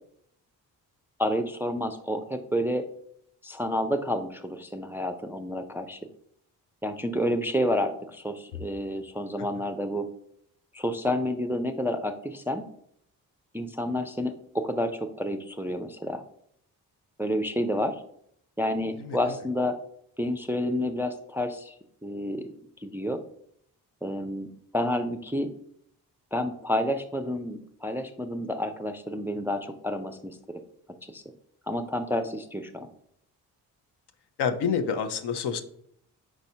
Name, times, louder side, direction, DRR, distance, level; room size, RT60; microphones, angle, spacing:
voice 1, 1.2-2.8 3.4-6.0 6.8-10.1 10.7-12.6 13.5-16.2 17.2-18.0 18.6-19.8 20.2-21.7 22.0-22.5 22.8-23.2 24.0-25.5 26.3-30.6 31.0-31.2 31.7-32.9, left 1 dB, 5° right, 7 dB, 0.4 m, -29 dB
voice 2, 34.4-35.6, left 6 dB, 65° left, 9 dB, 0.7 m, -27 dB
4.7 x 4.1 x 2.7 m, 0.68 s
supercardioid pair, 45°, 44 cm